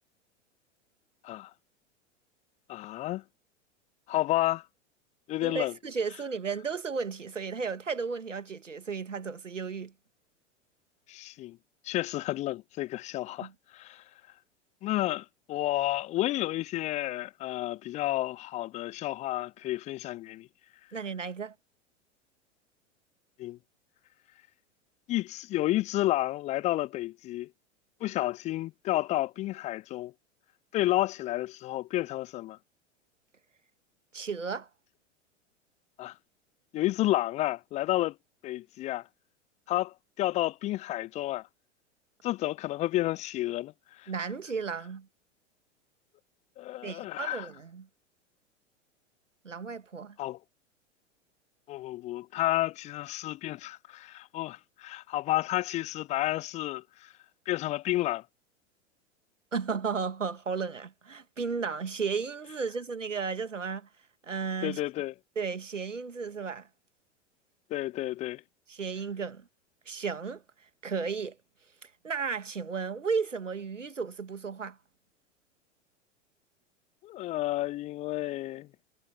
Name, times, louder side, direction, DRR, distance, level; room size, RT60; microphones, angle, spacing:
voice 1, 2.7-3.2 4.1-4.6 5.3-5.7 11.1-11.6 11.8-14.0 14.8-20.5 23.4-23.6 25.1-27.5 28.0-30.1 30.7-32.6 36.0-36.1 36.7-38.2 38.4-39.1 39.7-41.5 42.2-44.1 46.6-47.5 50.2-50.4 51.7-57.1 57.5-58.2 64.6-65.1 67.7-68.4 77.0-78.7, left 16 dB, 20° left, 0.5 m, -31 dB
voice 2, 5.4-9.9 13.4-13.5 20.9-21.5 34.1-34.7 44.1-45.1 46.8-47.9 49.4-50.2 59.5-63.9 64.2-64.8 65.4-66.7 68.7-69.4 69.9-70.4 70.8-71.4 71.8-74.8, right 5 dB, 80° right, 2.1 m, -34 dB
figure-of-eight pair, 95°, 37 cm